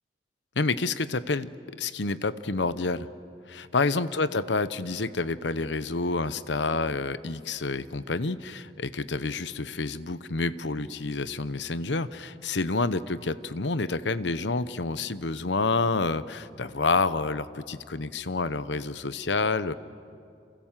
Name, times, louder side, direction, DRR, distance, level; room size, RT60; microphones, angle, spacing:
voice 1, 0.6-1.5 1.8-3.1 3.5-19.7, left 3 dB, 80° left, 14 dB, 0.9 m, -28 dB
29.0 x 27.0 x 7.5 m, 2.5 s
head